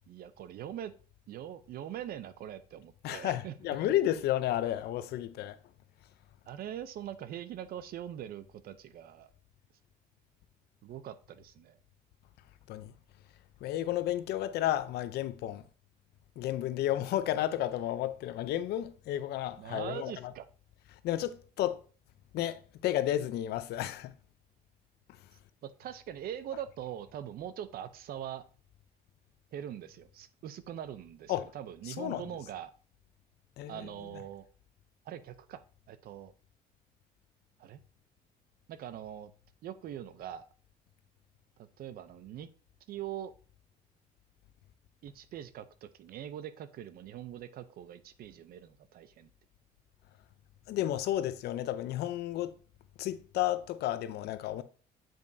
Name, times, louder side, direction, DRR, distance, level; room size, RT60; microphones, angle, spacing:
voice 1, 0.1-0.9 1.3-3.5 6.5-9.3 10.8-11.8 19.6-20.5 25.6-28.4 29.5-32.7 33.7-34.5 35.1-36.3 37.6-37.8 38.7-39.3 39.6-40.5 41.6-42.5 42.9-43.3 45.0-49.3, right 10 dB, 60° right, 0.6 m, -42 dB
voice 2, 3.0-5.6 12.7-12.9 13.6-15.6 16.4-20.3 21.0-21.8 22.3-24.1 31.3-31.5 31.8-32.2 33.6-33.9 50.7-52.6 53.0-54.6, left 13 dB, 75° left, 0.6 m, -32 dB
7.4 x 5.2 x 2.7 m
cardioid pair, 110°, 17 cm